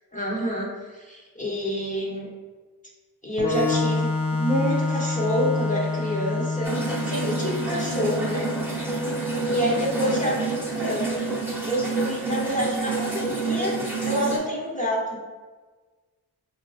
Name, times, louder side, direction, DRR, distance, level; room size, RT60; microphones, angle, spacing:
voice 1, 0.1-2.3 3.2-6.7 7.0-8.5 9.5-11.1 11.7-13.8 14.1-15.2, equal, 20° left, -5 dB, 0.9 m, -27 dB
Organ, 3.4-10.9, left 3 dB, 50° left, 0.5 m, -28 dB
sound 1, 6.6-14.4, right 3 dB, 5° right, 1.0 m, -28 dB
4.2 x 2.5 x 2.4 m, 1.3 s
cardioid pair, 45°, 39 cm